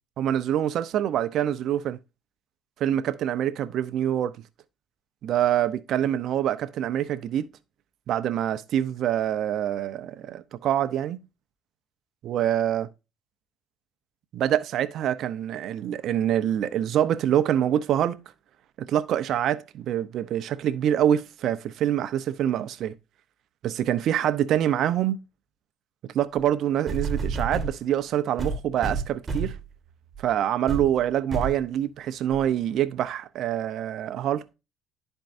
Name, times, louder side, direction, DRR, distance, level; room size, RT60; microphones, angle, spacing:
voice 1, 0.2-2.0 2.8-4.3 5.2-7.5 8.1-11.2 12.2-12.9 14.3-18.1 18.9-22.9 23.6-25.2 26.1-29.5 30.2-34.4, right 10 dB, 65° right, 0.7 m, -25 dB
sound 1, 26.4-26.5 26.9-27.8 28.4-29.6 30.1-30.3 30.7-30.9 31.3-31.6 32.3-32.4, right 4 dB, 25° right, 1.5 m, -29 dB
11.5 x 4.5 x 2.6 m
cardioid pair, 100°, 0 cm